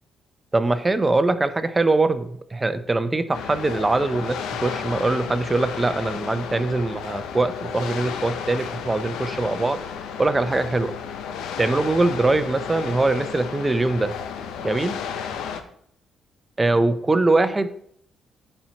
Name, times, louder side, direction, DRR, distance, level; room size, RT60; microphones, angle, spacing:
voice 1, 0.5-9.8 10.2-10.9 11.6-14.1 14.6-15.0 16.6-17.7, right 2 dB, 20° right, 11 dB, 0.6 m, -22 dB
sound 1, 3.3-15.6, left 7 dB, 85° left, 0.6 m, -33 dB
9.9 x 4.4 x 2.9 m, 0.65 s
cardioid pair, 90°, 0 cm